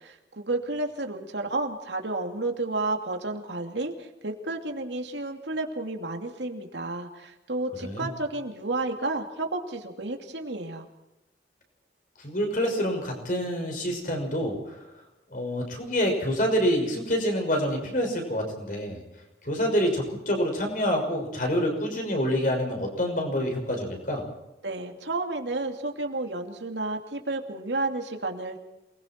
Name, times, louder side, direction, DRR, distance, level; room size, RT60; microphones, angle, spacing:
voice 1, 0.0-10.9 24.6-28.6, right 2 dB, 80° right, 4 dB, 2.7 m, -31 dB
voice 2, 12.2-14.8 15.3-19.0 19.4-24.2, equal, 50° left, 2 dB, 6.0 m, -27 dB
28.0 x 21.0 x 4.6 m, 0.96 s
head